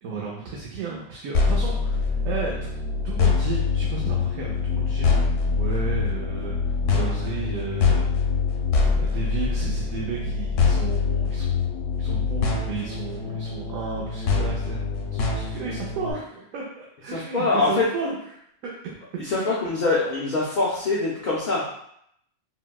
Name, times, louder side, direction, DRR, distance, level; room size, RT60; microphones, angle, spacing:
voice 1, 0.0-2.7 3.0-5.3 5.6-8.1 8.9-11.6 12.0-14.8 15.1-18.2 18.6-18.7 19.3-19.5, right 4 dB, 90° right, -3 dB, 1.0 m, -33 dB
sound 1, 1.3-16.1, left 5 dB, 75° left, 0.9 m, -24 dB
voice 2, 17.1-17.8 19.2-21.7, left 3 dB, 55° left, -6 dB, 0.5 m, -24 dB
3.9 x 2.1 x 2.2 m, 0.72 s
omnidirectional pair, 1.4 m